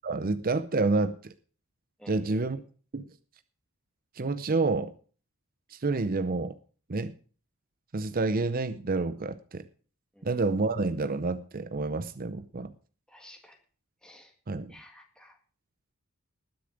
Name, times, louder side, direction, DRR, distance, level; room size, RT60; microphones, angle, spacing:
voice 1, 0.0-1.3 2.1-2.6 2.9-3.1 4.2-4.9 5.7-6.5 6.9-7.1 7.9-9.7 10.2-12.7 14.5-14.7, right 3 dB, 40° right, 11 dB, 0.7 m, -28 dB
voice 2, 2.0-2.6 10.1-10.3 13.1-13.6 14.0-14.3 14.7-15.4, left 1 dB, 5° left, 2 dB, 1.8 m, -53 dB
20.0 x 7.0 x 5.0 m, 0.40 s
head